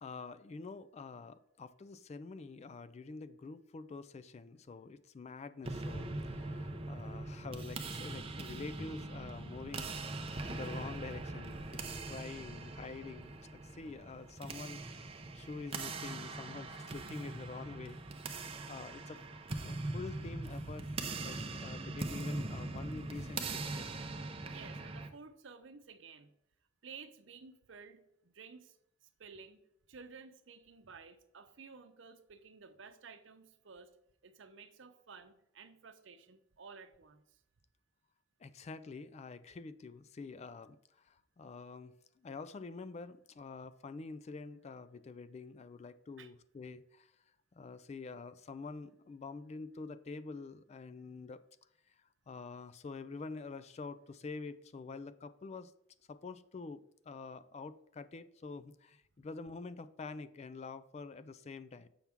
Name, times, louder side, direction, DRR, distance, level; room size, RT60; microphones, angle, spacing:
voice 1, 0.0-10.1 10.5-15.0 15.3-18.0 18.7-19.2 19.6-20.9 21.2-23.9 38.4-41.9 42.2-47.1 47.5-51.4 51.9-52.0 52.3-55.7 56.1-61.9, left 4 dB, 35° left, 0.3 m, -47 dB
sound 1, 5.6-25.1, right 2 dB, 30° right, 0.6 m, -41 dB
voice 2, 24.5-26.3 26.8-28.8 29.0-29.6 29.9-33.9 34.2-37.4 46.2-46.3, right 5 dB, 70° right, 0.7 m, -54 dB
7.0 x 5.8 x 3.6 m
head